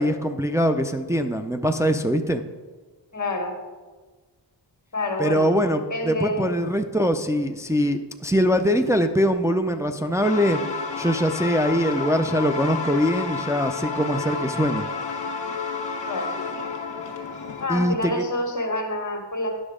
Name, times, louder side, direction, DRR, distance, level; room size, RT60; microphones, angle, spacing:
voice 1, 0.0-2.4 5.2-10.6 11.0-14.8 17.7-18.2, equal, 5° right, 5 dB, 0.4 m, -22 dB
voice 2, 3.1-3.5 4.9-5.5 5.9-6.5 16.1-16.3 17.6-19.5, left 1 dB, 40° left, 2 dB, 1.7 m, -27 dB
sound 1, 10.2-17.7, left 4 dB, 70° left, 1.3 m, -31 dB
9.9 x 6.3 x 4.9 m, 1.3 s
wide cardioid pair, 95°, 44 cm